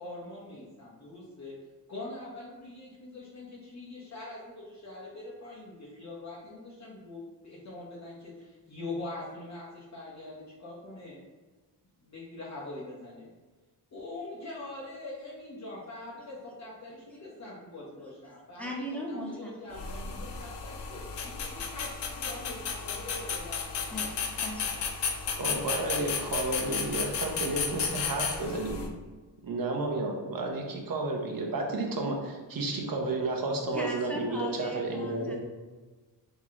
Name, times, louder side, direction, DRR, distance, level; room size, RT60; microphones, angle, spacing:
voice 1, 0.0-1.5 1.9-11.2 12.0-13.3 13.9-23.8, left 2 dB, 40° left, -6 dB, 1.0 m, -43 dB
voice 2, 18.6-20.2 23.9-24.7 25.3-25.4 33.7-35.4, equal, 5° left, -2 dB, 0.8 m, -38 dB
sound 1, 19.7-28.9, left 6 dB, 70° left, 0.6 m, -34 dB
voice 3, 25.4-28.9 29.4-35.4, right 2 dB, 50° right, 0 dB, 0.9 m, -32 dB
3.8 x 3.0 x 3.7 m, 1.3 s
wide cardioid pair, 100°, 43 cm